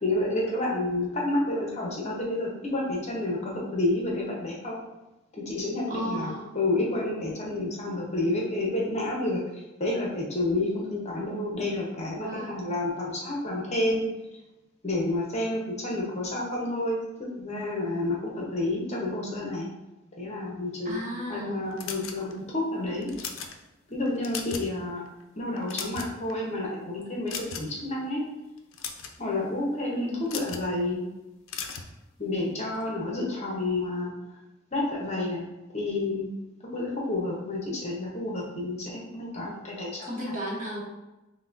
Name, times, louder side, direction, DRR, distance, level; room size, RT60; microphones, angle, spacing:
voice 1, 0.0-4.9 5.3-9.4 9.8-14.0 14.8-17.0 17.4-19.7 20.2-21.0 21.3-23.1 23.9-25.1 25.4-28.3 29.2-31.0 32.2-34.1 34.7-35.5 35.7-36.3 36.7-40.1, left 2 dB, 35° left, -3 dB, 0.8 m, -29 dB
voice 2, 5.9-6.5 10.6-11.3 12.2-12.6 20.8-21.6 29.9-30.3 40.0-40.8, equal, 40° right, -4 dB, 1.0 m, -35 dB
sound 1, 21.8-22.5 23.0-23.5 24.1-24.7 25.1-25.2 25.6-26.3 27.3-27.8 28.6-29.2 30.3-30.7 31.5-31.9, left 6 dB, 75° left, 0.4 m, -36 dB
5.6 x 2.2 x 2.5 m, 1.0 s
head